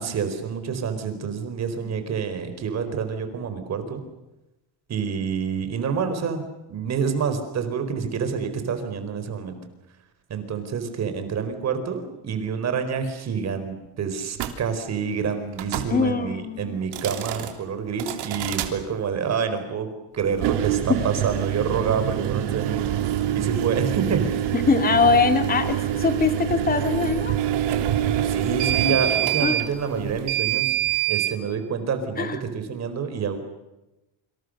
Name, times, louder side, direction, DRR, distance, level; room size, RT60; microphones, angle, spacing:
voice 1, 0.0-4.0 4.9-6.4 6.7-9.6 10.3-19.9 20.1-22.9 23.3-24.5 28.2-30.7 31.1-33.4, right 6 dB, 35° right, 8 dB, 4.4 m, -27 dB
sound 1, 14.4-14.6 15.5-15.9 16.8-17.5 18.0-18.7 20.3-31.3, right 12 dB, 65° right, 3.4 m, -25 dB
voice 2, 15.9-16.7 20.9-21.0 24.5-27.3 29.4-29.6 32.2-32.4, left 5 dB, 20° left, 8 dB, 2.2 m, -22 dB
27.5 x 26.5 x 6.5 m, 0.99 s
cardioid pair, 165°, 45 cm